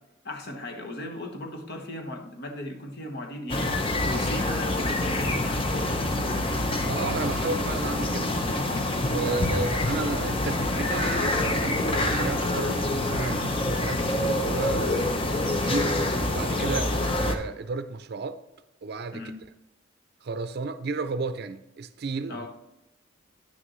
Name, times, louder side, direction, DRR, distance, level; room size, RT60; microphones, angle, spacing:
voice 1, 0.2-3.7 4.0-5.6 9.2-9.4 16.6-16.8 19.1-19.3 22.3-22.5, left 1 dB, 55° left, 1.1 m, -37 dB
sound 1, 3.5-17.4, left 1 dB, 30° left, 0.7 m, -26 dB
voice 2, 6.8-8.3 9.0-14.9 15.4-16.0 16.3-18.4 18.8-19.2 20.2-22.5, right 3 dB, 55° right, 0.5 m, -33 dB
9.9 x 6.3 x 3.1 m
head